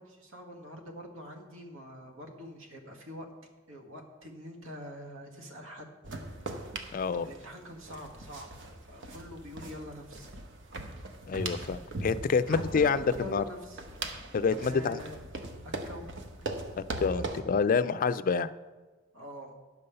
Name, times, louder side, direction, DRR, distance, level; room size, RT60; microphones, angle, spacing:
voice 1, 0.0-3.3 3.7-5.9 7.2-10.3 12.5-13.8 14.6-15.2 15.6-16.1 19.1-19.5, equal, 85° right, 2 dB, 1.6 m, -44 dB
sound 1, 6.0-17.4, right 2 dB, 65° right, 1.0 m, -40 dB
voice 2, 6.9-7.3 11.3-13.4 14.3-15.0 16.8-18.5, left 5 dB, 45° left, 14 dB, 0.4 m, -27 dB
10.5 x 5.5 x 6.7 m, 1.3 s
head